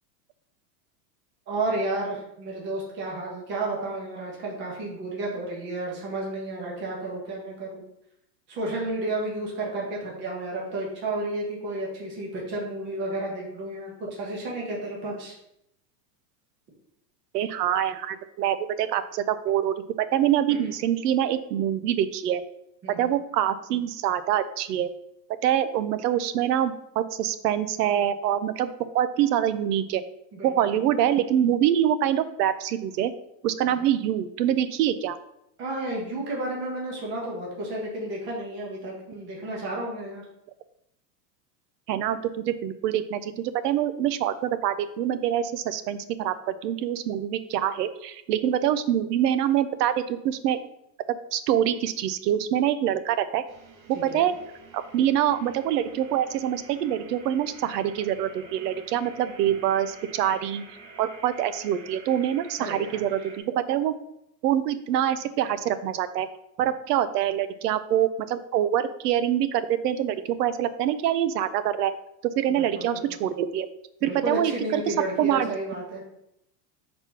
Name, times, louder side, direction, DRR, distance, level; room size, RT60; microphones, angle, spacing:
voice 1, 1.5-7.8 8.5-15.3 20.5-20.6 22.8-23.1 30.3-30.7 33.6-33.9 35.6-40.2 54.1-54.2 62.6-63.0 72.6-73.0 74.1-76.0, right 2 dB, 20° right, -3 dB, 1.3 m, -32 dB
voice 2, 17.3-22.4 23.0-24.9 25.4-30.0 30.4-33.1 33.4-35.2 41.9-50.6 51.1-53.4 53.9-54.3 54.7-60.6 61.0-63.9 64.4-66.3 66.6-71.9 72.2-73.7 74.0-75.5, right 10 dB, 70° right, 13 dB, 0.7 m, -25 dB
sound 1, 53.5-63.4, right 4 dB, 85° right, 1.4 m, -48 dB
4.4 x 4.3 x 5.7 m, 0.79 s
supercardioid pair, 175°, 49 cm